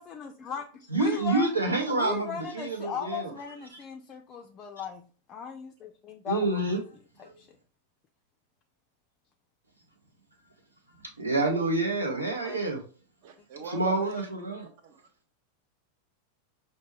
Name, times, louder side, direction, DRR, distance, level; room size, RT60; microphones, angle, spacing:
voice 1, 0.0-1.5 1.9-5.0 5.3-6.8 7.2-7.5 12.4-12.6, left 8 dB, 30° left, 0.4 m, -38 dB
voice 2, 0.9-3.3 6.3-6.8 11.2-12.8 13.6-14.7, right 2 dB, 85° right, 0.8 m, -27 dB
voice 3, 13.2-14.5 14.8-15.0, right 5 dB, 50° right, 0.6 m, -43 dB
5.2 x 2.2 x 3.0 m
figure-of-eight pair, 90°, 0 cm